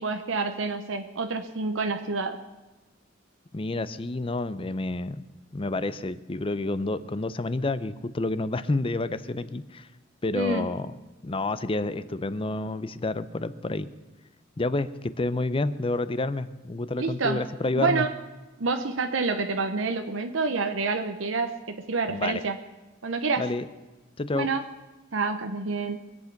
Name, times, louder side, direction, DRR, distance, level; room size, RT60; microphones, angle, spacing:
voice 1, 0.0-2.4 10.3-10.7 17.0-17.5 17.7-18.1 18.6-22.6 23.0-23.5 24.3-24.6 25.1-26.0, right 4 dB, 85° right, 6 dB, 0.9 m, -28 dB
voice 2, 3.5-5.2 5.5-9.9 10.2-10.9 11.2-13.9 14.6-18.1 22.1-22.4 23.4-23.7 24.2-24.5, left 2 dB, 30° left, 14 dB, 0.6 m, -29 dB
23.5 x 8.2 x 5.9 m, 1.1 s
head